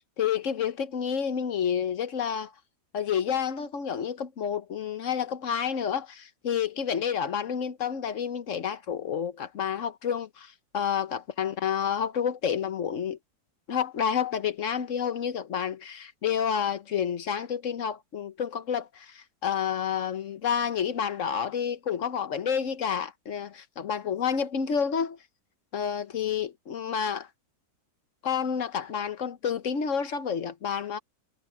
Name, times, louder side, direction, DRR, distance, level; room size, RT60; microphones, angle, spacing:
voice 1, 0.2-2.5 2.9-13.2 13.7-25.2 25.7-27.3 28.2-31.0, left 7 dB, 55° left, 1.3 m, -29 dB
omnidirectional pair, 1.6 m